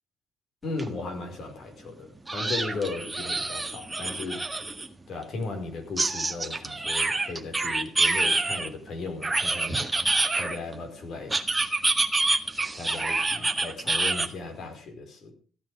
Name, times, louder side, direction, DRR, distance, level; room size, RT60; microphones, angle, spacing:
voice 1, 0.6-4.4 5.1-9.7 10.4-11.3 12.8-15.3, left 3 dB, 65° left, 4 dB, 4.5 m, -36 dB
sound 1, 0.8-0.9 1.2-1.3 2.3-4.9 6.0-8.7 9.2-10.7 11.3-14.3, right 2 dB, 15° right, 1.7 m, -27 dB
15.0 x 9.5 x 6.4 m, 0.42 s
cardioid pair, 90°, 0 cm